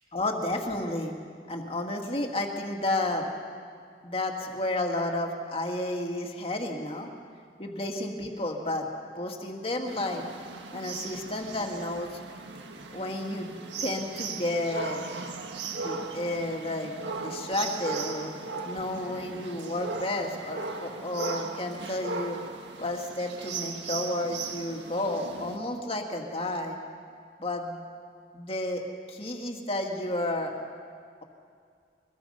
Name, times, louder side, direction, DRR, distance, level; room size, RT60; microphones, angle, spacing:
voice 1, 0.1-1.1 1.5-3.3 4.0-7.1 7.6-8.9 9.2-10.2 10.7-12.2 12.9-13.5 13.8-15.0 15.7-18.3 18.7-22.4 22.8-26.8 27.4-27.8 28.3-28.8 29.1-30.5, left 1 dB, 35° left, 2 dB, 2.1 m, -31 dB
sound 1, 9.9-25.6, right 4 dB, 85° right, 1.7 m, -38 dB
23.5 x 21.0 x 5.6 m, 2.2 s
head